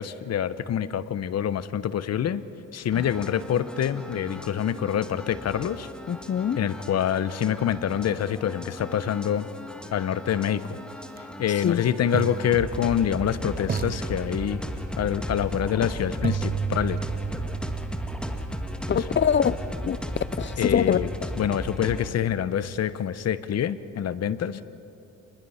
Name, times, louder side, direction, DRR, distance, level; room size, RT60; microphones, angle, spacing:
voice 1, 0.0-2.4 2.7-5.9 6.6-9.5 9.9-10.8 11.4-14.6 15.0-17.0 20.6-21.1 21.4-24.6, left 9 dB, 55° left, 15 dB, 1.0 m, -26 dB
sound 1, 2.9-22.1, equal, 5° left, 1.7 m, -36 dB
voice 2, 6.1-6.6 11.6-11.8 18.9-19.5 19.8-20.0 20.4-21.0, left 8 dB, 40° left, 18 dB, 0.6 m, -23 dB
sound 2, 11.0-11.2 12.1-13.3 13.7-14.9 16.2-20.2, right 8 dB, 30° right, 0.5 m, -34 dB
sound 3, 14.0-20.4, equal, 75° left, 2.5 m, -44 dB
28.0 x 21.0 x 5.7 m, 2.7 s
cardioid pair, 90°, 30 cm